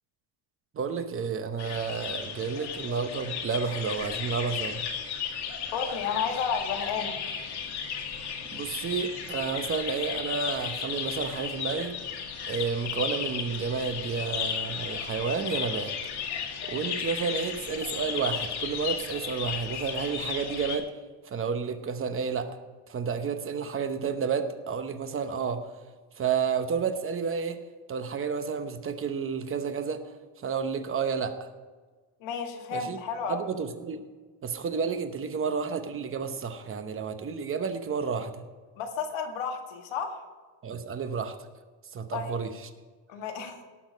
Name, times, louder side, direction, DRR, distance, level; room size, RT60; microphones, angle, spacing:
voice 1, 0.7-4.9 8.1-8.3 8.5-12.0 12.5-15.9 16.7-20.9 21.2-22.5 22.9-25.7 26.2-27.6 27.9-30.0 30.4-31.5 32.7-33.0 33.3-34.1 34.4-38.4 40.6-41.4 41.9-42.7, right 6 dB, 30° right, 8 dB, 0.9 m, -31 dB
sound 1, 1.6-20.8, left 7 dB, 55° left, 2.1 m, -34 dB
voice 2, 5.7-7.2 32.2-33.5 38.8-40.2 42.1-42.4 43.1-43.6, left 6 dB, 90° left, 4 dB, 2.0 m, -32 dB
18.5 x 6.4 x 5.2 m, 1.4 s
cardioid pair, 165°, 46 cm